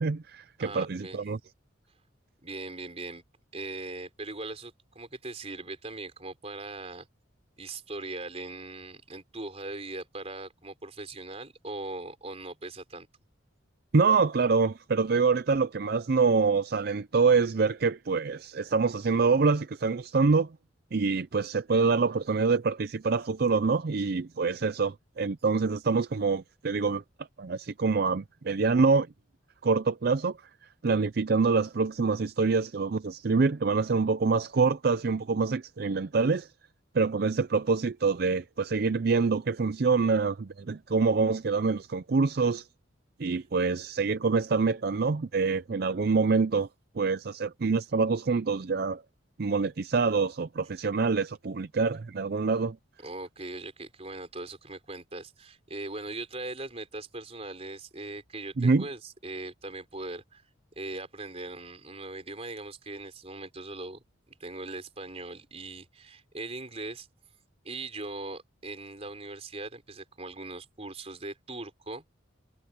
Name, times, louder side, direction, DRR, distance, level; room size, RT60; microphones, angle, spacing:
voice 1, 0.0-1.4 13.9-20.5 20.9-27.0 27.4-29.1 29.6-30.4 30.8-36.5 36.9-42.7 43.2-46.7 47.0-49.0 49.4-52.8 58.6-58.9, right 4 dB, 50° right, 0.5 m, -26 dB
voice 2, 0.6-1.2 2.4-3.2 3.5-7.1 7.6-13.1 53.0-60.4 60.8-67.1 67.6-72.0, right 2 dB, 30° right, 4.5 m, -40 dB
head